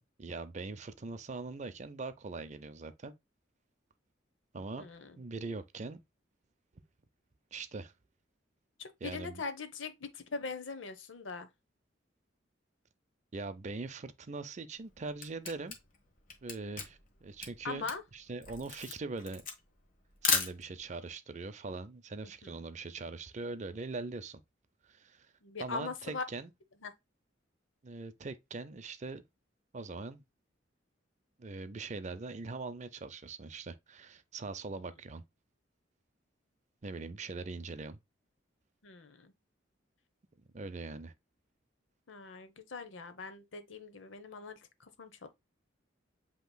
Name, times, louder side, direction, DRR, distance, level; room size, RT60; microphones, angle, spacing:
voice 1, 0.2-3.1 4.5-4.8 5.1-6.0 7.5-7.9 9.0-9.4 13.3-15.7 16.4-17.8 18.1-19.4 20.2-24.4 24.8-25.3 25.6-26.5 27.8-29.2 29.7-30.2 31.4-35.2 36.8-38.0 40.5-41.1, right 3 dB, 40° right, 0.5 m, -41 dB
voice 2, 4.8-5.2 8.8-11.5 17.6-18.0 22.4-22.5 25.4-26.2 26.8-26.9 34.7-34.8 38.8-39.3 42.1-45.3, left 4 dB, 80° left, 0.8 m, -41 dB
Camera, 14.8-21.0, left 5 dB, 45° left, 1.2 m, -35 dB
8.0 x 2.9 x 2.2 m
head